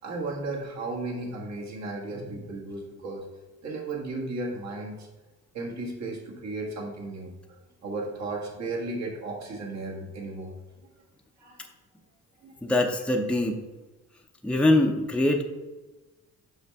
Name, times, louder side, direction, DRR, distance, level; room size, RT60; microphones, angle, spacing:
voice 1, 0.0-3.2 3.6-5.1 5.5-7.3 7.8-10.5 11.4-11.7 12.4-12.5, right 2 dB, 60° right, -1 dB, 1.7 m, -34 dB
voice 2, 12.6-13.6 14.4-15.4, left 1 dB, 5° left, 2 dB, 0.6 m, -23 dB
5.6 x 5.5 x 3.5 m, 1.2 s
cardioid pair, 90°, 30 cm